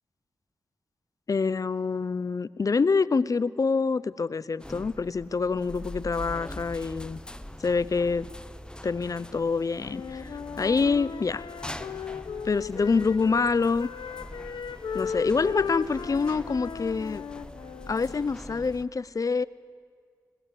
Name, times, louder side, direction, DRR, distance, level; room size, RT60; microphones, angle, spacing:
voice 1, 1.3-7.2 7.6-8.3 8.8-11.4 12.4-13.9 14.9-17.2 17.9-19.4, left 4 dB, 50° left, 18 dB, 0.6 m, -26 dB
sound 1, 4.6-18.8, left 1 dB, 10° left, 1.0 m, -43 dB
Wind instrument woodwind instrument, 9.8-13.5 13.8-18.2, left 6 dB, 85° left, 1.0 m, -37 dB
20.5 x 17.5 x 8.3 m, 2.1 s
cardioid pair, 45°, 8 cm